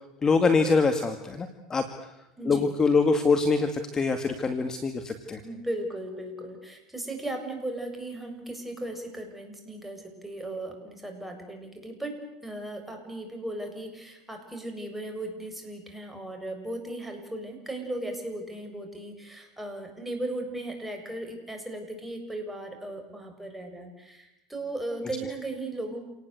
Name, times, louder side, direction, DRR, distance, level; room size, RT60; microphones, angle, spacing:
voice 1, 0.2-1.9 2.5-5.4, left 4 dB, 25° left, 7 dB, 2.3 m, -24 dB
voice 2, 2.4-2.8 5.4-26.0, right 1 dB, 5° right, 4 dB, 7.3 m, -37 dB
28.5 x 19.0 x 8.2 m, 0.89 s
hypercardioid pair, 95°, 3 cm